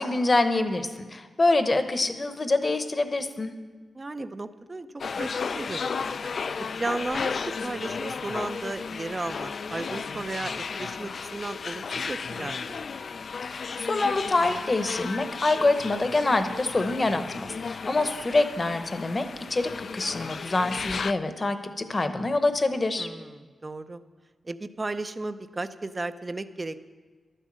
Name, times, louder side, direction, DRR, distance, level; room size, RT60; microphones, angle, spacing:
voice 1, 0.0-3.5 13.4-23.1, left 2 dB, 30° left, 9 dB, 0.9 m, -26 dB
voice 2, 3.9-4.9 5.2-5.3 5.5-6.2 6.7-12.8 23.0-24.0 24.4-26.9, right 2 dB, 25° right, 11 dB, 0.5 m, -34 dB
sound 1, 5.0-21.1, left 5 dB, 50° left, 0.3 m, -34 dB
12.0 x 10.0 x 7.5 m, 1.5 s
wide cardioid pair, 140°, 0 cm